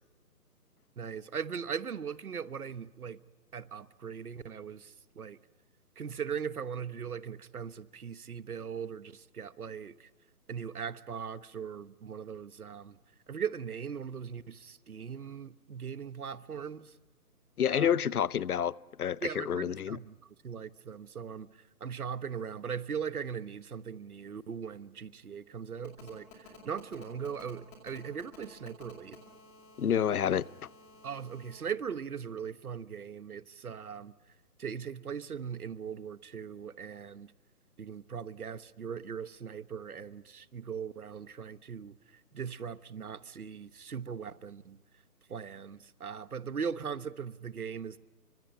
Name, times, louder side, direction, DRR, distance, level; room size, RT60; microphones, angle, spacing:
voice 1, 1.0-3.2 3.5-5.4 6.0-10.1 10.5-13.0 13.3-16.9 17.7-18.0 19.2-29.2 31.0-34.1 34.6-37.3 37.8-44.8 45.3-48.0, right 7 dB, 65° right, 1.3 m, -39 dB
voice 2, 17.6-20.0 29.8-30.5, left 9 dB, 65° left, 0.7 m, -29 dB
Telephone, 25.8-31.5, left 4 dB, 10° left, 2.3 m, -54 dB
30.0 x 25.0 x 5.8 m
hypercardioid pair, 175°, 47 cm